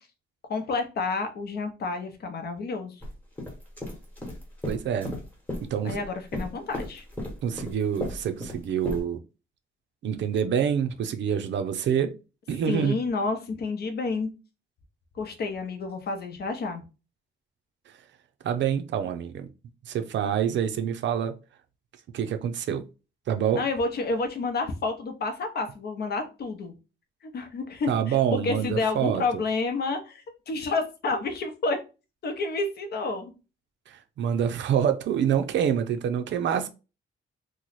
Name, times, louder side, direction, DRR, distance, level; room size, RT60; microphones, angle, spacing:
voice 1, 0.5-3.0 5.8-7.1 12.7-14.3 15.1-16.8 23.5-26.7 27.2-31.8 32.2-33.3, left 3 dB, 55° left, 0.7 m, -30 dB
sound 1, 3.0-3.1 3.4-6.1 6.3-9.0, left 1 dB, 10° left, 1.1 m, -34 dB
voice 2, 4.6-5.1 5.6-6.0 7.4-9.2 10.0-12.1 12.5-13.0 18.4-19.5 19.9-21.4 22.1-22.8 23.3-23.6 27.9-29.2 33.9-36.7, right 8 dB, 65° right, 0.5 m, -26 dB
3.0 x 2.1 x 4.0 m
wide cardioid pair, 150°, 20 cm